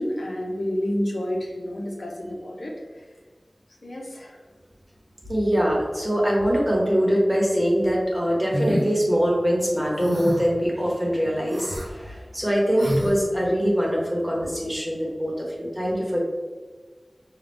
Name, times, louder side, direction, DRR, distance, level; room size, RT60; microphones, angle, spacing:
voice 1, 0.0-3.1 3.8-4.4, equal, 75° left, -2 dB, 0.8 m, -29 dB
voice 2, 5.3-16.2, equal, 10° right, -3 dB, 1.1 m, -23 dB
sound 1, 8.5-8.9 10.0-10.5 11.5-11.9 12.8-13.1, equal, 80° right, 0.9 m, -27 dB
5.6 x 2.4 x 3.5 m, 1.4 s
wide cardioid pair, 65°, 0 cm